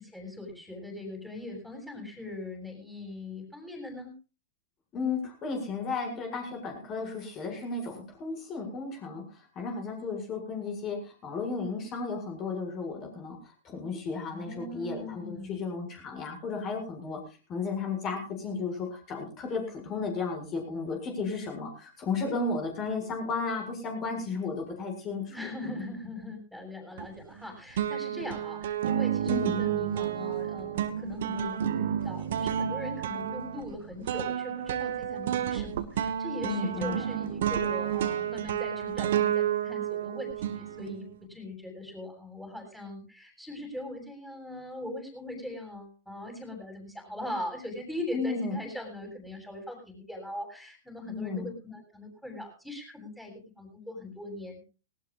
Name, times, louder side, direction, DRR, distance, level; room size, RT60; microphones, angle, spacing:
voice 1, 0.1-4.1 14.3-15.7 25.3-54.6, left 1 dB, ahead, 2 dB, 7.9 m, -40 dB
voice 2, 4.9-17.2 17.5-25.3 25.6-25.9 29.2-29.6 36.4-37.1 48.1-48.6 50.9-51.5, left 4 dB, 30° left, 4 dB, 7.3 m, -34 dB
sound 1, 27.0-27.4 27.8-41.2, right 10 dB, 60° right, 1.6 m, -30 dB
19.0 x 19.0 x 2.6 m, 0.34 s
figure-of-eight pair, 105°, 0 cm